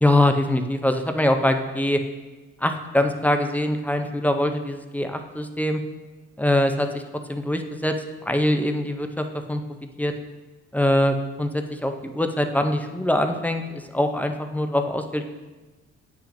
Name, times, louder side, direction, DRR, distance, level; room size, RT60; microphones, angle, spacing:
voice 1, 0.0-2.0 2.6-5.8 6.4-7.0 7.3-7.9 8.2-9.6 10.0-10.1 10.7-15.2, left 1 dB, 5° left, 6 dB, 0.5 m, -23 dB
8.4 x 5.9 x 2.5 m, 1.2 s
cardioid pair, 90°, 30 cm